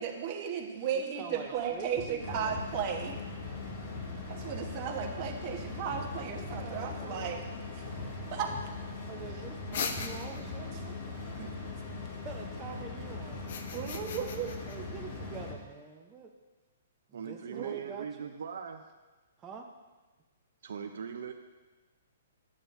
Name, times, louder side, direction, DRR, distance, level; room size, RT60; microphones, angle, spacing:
voice 1, 0.0-3.2 4.3-7.4 7.7-8.5 11.4-11.5 11.9-12.0 13.7-14.5 17.5-17.7, right 7 dB, 40° right, 3 dB, 1.2 m, -35 dB
voice 2, 0.9-2.5 6.3-7.3 9.1-11.5 12.2-13.5 14.7-16.3 17.1-18.4 19.4-19.7, right 5 dB, 20° right, 0 dB, 0.7 m, -46 dB
sound 1, 1.5-11.4, left 2 dB, 15° left, 2.1 m, -50 dB
sound 2, 2.2-15.5, left 3 dB, 40° left, 2.5 m, -40 dB
sound 3, 9.7-10.6 13.3-14.8, left 5 dB, 60° left, 0.7 m, -38 dB
voice 3, 17.1-18.8 20.6-21.3, right 7 dB, 70° right, 4 dB, 0.6 m, -40 dB
10.5 x 8.2 x 2.6 m, 1.2 s
hypercardioid pair, 135°, 0 cm